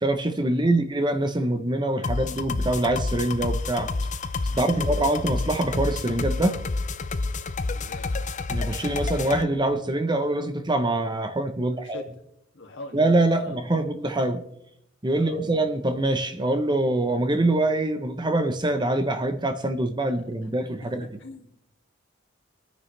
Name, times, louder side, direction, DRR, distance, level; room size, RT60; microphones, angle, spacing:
voice 1, 0.0-3.9 4.5-6.6 8.5-12.0 12.9-14.4 15.0-21.1, right 2 dB, 25° right, 1.0 m, -24 dB
sound 1, 2.0-9.4, left 3 dB, 40° left, 0.7 m, -29 dB
voice 2, 4.5-5.1 7.7-8.1 11.6-12.1 12.5-13.1 13.4-13.6 15.2-15.4 20.1-20.2 20.8-20.9 21.2-21.5, left 2 dB, 65° left, 2.5 m, -43 dB
24.5 x 9.7 x 3.4 m
head